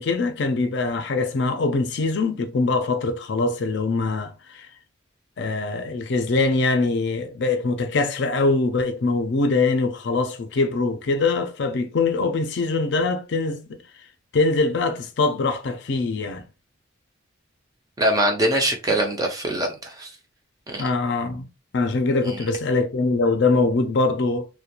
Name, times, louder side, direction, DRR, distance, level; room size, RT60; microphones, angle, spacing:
voice 1, 0.0-4.7 5.4-13.8 14.3-16.5 20.8-21.5 21.7-24.5, left 3 dB, 60° left, 0.4 m, -23 dB
voice 2, 18.0-20.1 20.7-20.9 22.3-22.4, right 1 dB, 20° right, 0.4 m, -23 dB
2.4 x 2.1 x 2.8 m
head